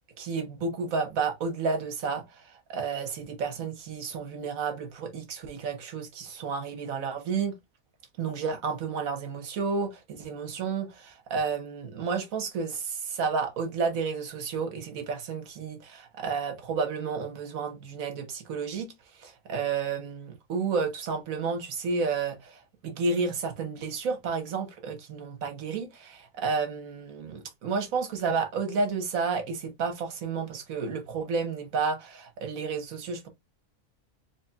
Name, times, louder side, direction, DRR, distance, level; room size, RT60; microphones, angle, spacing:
voice 1, 0.2-7.5 8.2-33.3, right 5 dB, 75° right, 1.4 m, -31 dB
4.3 x 3.3 x 2.3 m
omnidirectional pair, 1.5 m